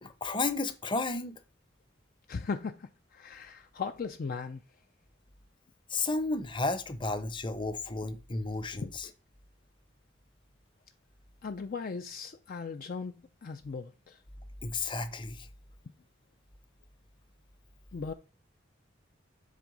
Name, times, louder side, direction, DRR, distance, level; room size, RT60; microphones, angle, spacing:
voice 1, 0.0-1.4 5.9-9.1 14.6-15.5, left 3 dB, 25° left, 0.8 m, -33 dB
voice 2, 2.3-4.6 8.7-8.9 11.4-13.2 13.4-14.2 17.9-18.1, left 5 dB, 50° left, 0.4 m, -38 dB
7.6 x 3.5 x 5.2 m
head